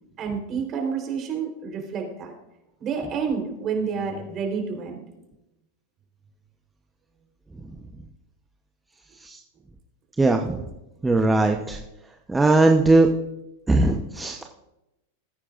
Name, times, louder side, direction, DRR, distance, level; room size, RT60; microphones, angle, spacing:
voice 1, 0.2-2.3 2.8-5.0, right 6 dB, 35° right, 2 dB, 3.7 m, -29 dB
voice 2, 10.2-10.7 11.0-11.8 12.3-13.1 13.7-14.5, right 2 dB, 10° right, 3 dB, 0.9 m, -19 dB
20.5 x 9.6 x 2.5 m, 0.95 s
hypercardioid pair, 105°, 0 cm